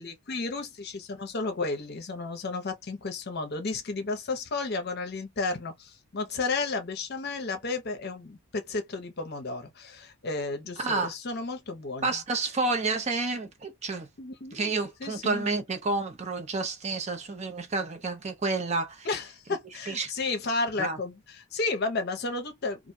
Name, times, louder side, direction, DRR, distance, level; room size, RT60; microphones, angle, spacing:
voice 1, 0.0-12.1 14.2-14.7 15.0-15.5 19.0-22.9, left 3 dB, 45° left, 0.6 m, -33 dB
voice 2, 10.8-11.1 12.0-14.1 14.5-19.1 19.9-20.1 20.8-21.0, right 3 dB, 30° right, 0.4 m, -30 dB
2.4 x 2.2 x 2.6 m
head